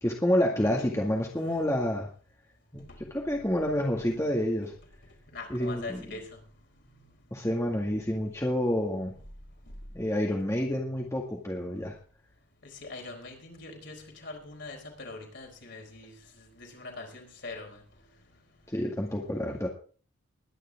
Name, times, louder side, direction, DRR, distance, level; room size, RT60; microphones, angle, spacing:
voice 1, 0.0-2.1 2.7-4.7 5.5-6.0 7.3-9.1 9.9-12.0 18.7-19.7, equal, 15° left, 1.9 m, -28 dB
voice 2, 0.5-1.3 5.3-6.4 12.6-17.8, left 3 dB, 55° left, 4.4 m, -43 dB
21.5 x 10.0 x 3.6 m
head